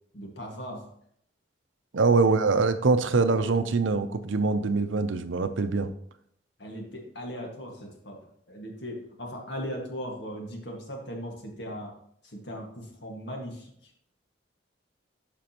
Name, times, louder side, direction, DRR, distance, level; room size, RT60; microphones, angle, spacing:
voice 1, 0.1-0.9 2.2-2.3 6.6-8.2 8.5-11.9 12.2-13.9, equal, 65° left, 1 dB, 1.7 m, -38 dB
voice 2, 1.9-5.9, right 4 dB, 85° right, 10 dB, 0.6 m, -24 dB
11.5 x 5.1 x 2.9 m, 0.68 s
head